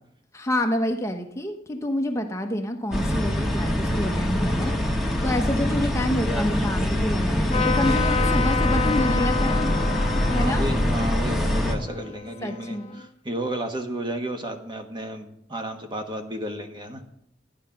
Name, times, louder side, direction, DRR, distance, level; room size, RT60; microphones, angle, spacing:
voice 1, 0.3-4.7 5.2-10.7 12.4-13.0, left 1 dB, 15° left, 4 dB, 1.0 m, -28 dB
sound 1, 2.9-11.7, equal, ahead, 1.6 m, -24 dB
Trumpet, 7.5-13.0, left 6 dB, 35° left, 0.5 m, -30 dB
voice 2, 10.4-17.0, right 1 dB, 25° right, 5 dB, 1.3 m, -32 dB
13.0 x 9.8 x 5.9 m, 0.76 s
head